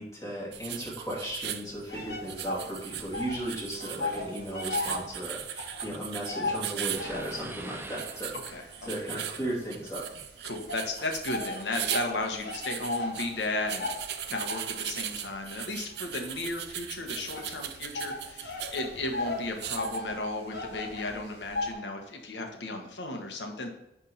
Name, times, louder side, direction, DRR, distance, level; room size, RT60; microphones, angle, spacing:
voice 1, 0.0-8.3 8.9-10.0, right 1 dB, 20° left, -5 dB, 2.5 m, -36 dB
sound 1, 0.5-20.0, right 10 dB, 70° right, 0.5 m, -39 dB
sound 2, 1.9-3.5 3.7-7.4 8.0-10.1 10.7-21.7, left 2 dB, 65° left, 1.8 m, -37 dB
sound 3, 6.9-8.8, right 2 dB, 15° right, 0.5 m, -43 dB
voice 2, 8.5-8.9 10.4-23.7, left 2 dB, 85° left, 3 dB, 1.3 m, -35 dB
9.9 x 3.6 x 4.2 m, 0.91 s
head